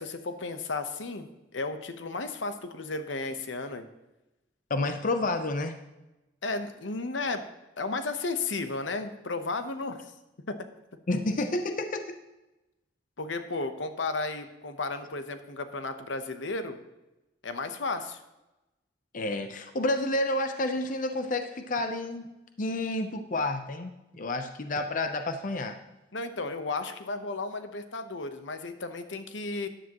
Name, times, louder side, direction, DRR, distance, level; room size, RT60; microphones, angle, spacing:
voice 1, 0.0-3.8 6.4-7.4 7.8-10.1 10.5-10.6 13.2-16.8 17.4-18.2 26.1-29.7, left 3 dB, 80° left, 9 dB, 1.0 m, -34 dB
voice 2, 4.7-5.7 11.1-12.2 19.1-22.3 22.6-25.8, left 2 dB, 45° left, 7 dB, 0.7 m, -30 dB
13.5 x 9.9 x 3.0 m, 0.99 s
head